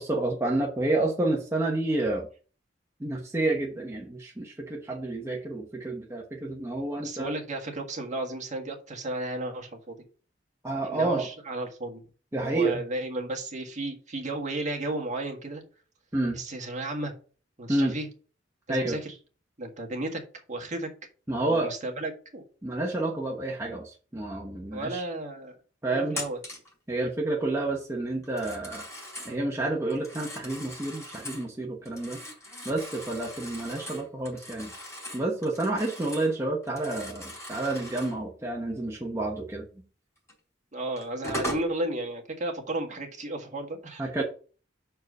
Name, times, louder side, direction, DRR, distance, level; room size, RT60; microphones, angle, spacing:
voice 1, 0.0-2.3 3.0-7.3 10.6-11.3 12.3-12.8 16.1-16.4 17.7-18.0 18.7-19.0 21.3-21.7 22.6-25.0 25.8-26.2 26.9-28.9 29.3-32.2 32.6-34.7 35.1-39.7 44.0-44.2, right 2 dB, 15° right, -1 dB, 0.9 m, -29 dB
voice 2, 7.0-10.0 10.8-12.0 12.4-15.6 16.4-17.1 17.6-18.1 18.7-19.1 19.6-20.2 20.5-20.9 21.3-22.4 24.7-25.5 25.9-26.4 40.7-44.2, right 2 dB, 40° right, 3 dB, 1.7 m, -33 dB
Telephone, 26.1-26.7 28.2-29.4 29.9-31.5 31.9-36.3 36.6-38.2 40.3-40.4 41.0-41.7, equal, 15° left, 4.1 m, -39 dB
6.2 x 4.6 x 5.4 m, 0.38 s
head